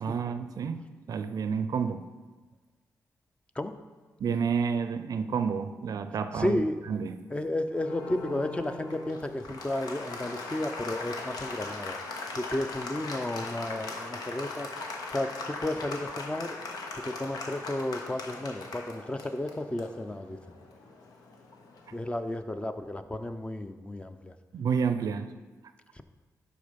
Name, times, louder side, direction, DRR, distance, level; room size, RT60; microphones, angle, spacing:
voice 1, 0.0-2.1 4.2-7.2 24.5-25.4, right 6 dB, 70° right, 10 dB, 0.5 m, -30 dB
voice 2, 6.3-6.8 7.3-12.0 12.3-14.7 15.1-16.6 17.0-20.4 21.9-24.3 25.9-26.0, left 1 dB, 20° left, 8 dB, 0.6 m, -33 dB
Applause, 7.7-22.1, left 3 dB, 85° left, 0.9 m, -40 dB
11.5 x 3.9 x 5.2 m, 1.3 s
cardioid pair, 65°, 6 cm